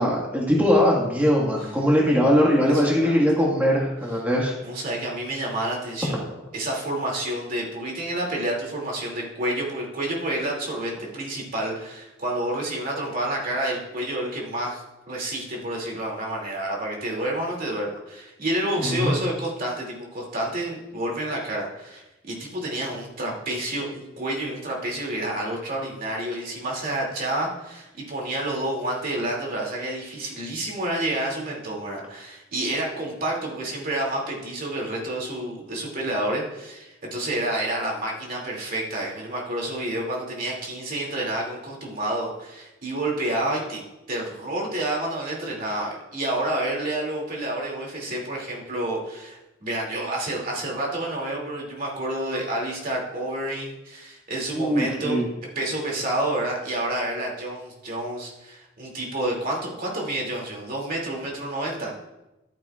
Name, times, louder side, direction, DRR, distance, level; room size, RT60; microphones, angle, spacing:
voice 1, 0.0-4.5 18.8-19.1 54.5-55.2, equal, 10° right, -3 dB, 1.6 m, -21 dB
voice 2, 2.6-3.2 4.6-6.2 6.5-43.8 44.1-55.2 55.5-61.9, right 1 dB, 50° right, -2 dB, 2.5 m, -29 dB
13.5 x 11.0 x 2.4 m, 0.98 s
head